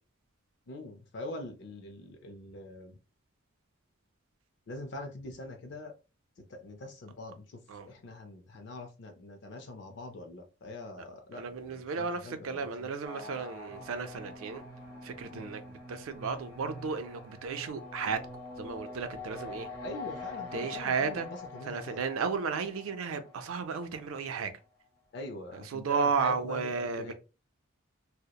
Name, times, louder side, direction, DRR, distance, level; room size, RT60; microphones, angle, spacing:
voice 1, 0.7-3.0 4.7-5.9 6.4-7.6 7.9-12.9 15.3-15.5 19.8-22.0 25.1-27.1, left 2 dB, 55° left, 0.4 m, -44 dB
voice 2, 11.3-14.6 15.0-15.6 15.9-18.2 18.6-19.7 20.5-21.3 21.7-24.5 25.7-27.1, right 5 dB, 85° right, 0.4 m, -33 dB
sound 1, 13.0-24.2, left 3 dB, 15° left, 0.7 m, -45 dB
2.8 x 2.0 x 2.2 m
head